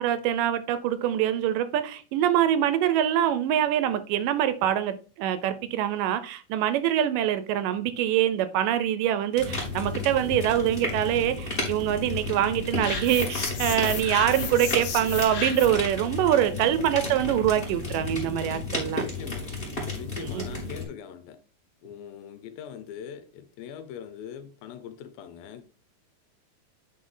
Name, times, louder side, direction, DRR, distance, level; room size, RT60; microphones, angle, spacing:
voice 1, 0.0-19.0 20.2-20.4, right 11 dB, 80° right, 2.1 m, -24 dB
sound 1, 9.4-20.8, left 2 dB, 15° left, 2.5 m, -33 dB
sound 2, 12.8-15.9, left 6 dB, 70° left, 3.0 m, -34 dB
voice 2, 16.5-16.9 18.9-19.5 19.9-21.4 21.8-25.6, left 9 dB, 85° left, 2.6 m, -42 dB
9.5 x 3.9 x 3.8 m
omnidirectional pair, 4.0 m